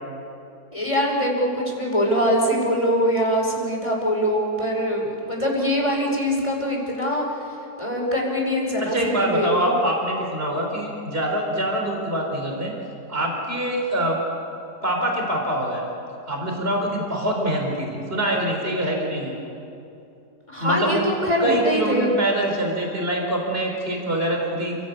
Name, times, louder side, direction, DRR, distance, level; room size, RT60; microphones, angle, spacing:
voice 1, 0.7-7.3 7.8-9.7 20.5-22.1, equal, 20° left, -1 dB, 5.3 m, -23 dB
voice 2, 8.9-12.7 13.1-14.2 14.8-15.9 16.3-19.3 20.6-21.1 21.4-24.8, right 1 dB, 35° right, 0 dB, 4.7 m, -24 dB
29.0 x 18.0 x 8.4 m, 2.7 s
omnidirectional pair, 1.7 m